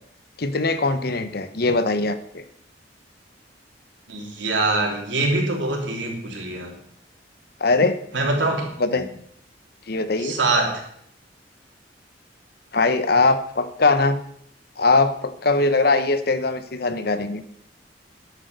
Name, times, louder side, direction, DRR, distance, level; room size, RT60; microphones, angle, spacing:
voice 1, 0.4-2.4 7.6-8.0 8.8-9.1 9.9-10.4 12.7-14.2 14.8-17.4, left 3 dB, 55° left, 11 dB, 0.9 m, -21 dB
voice 2, 4.1-6.7 8.1-9.1 10.2-10.8, right 2 dB, 85° right, 1 dB, 3.1 m, -24 dB
10.5 x 8.6 x 6.7 m, 0.68 s
head